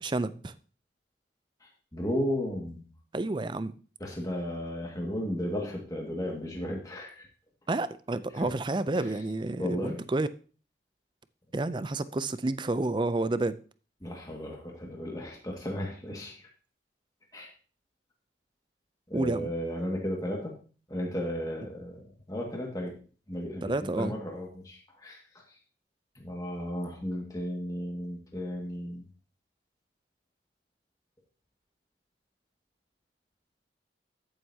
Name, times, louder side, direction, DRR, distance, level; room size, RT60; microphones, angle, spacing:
voice 1, 0.0-0.5 3.1-3.7 7.7-10.3 11.5-13.6 19.1-19.5 23.6-24.1, right 2 dB, 25° right, 0.4 m, -30 dB
voice 2, 1.6-2.9 4.0-7.3 8.3-8.5 9.6-10.0 14.0-16.5 17.3-17.5 19.1-20.6 20.9-23.0 23.3-25.2 26.2-29.0, equal, 20° left, 1.9 m, -34 dB
13.5 x 7.9 x 2.8 m
head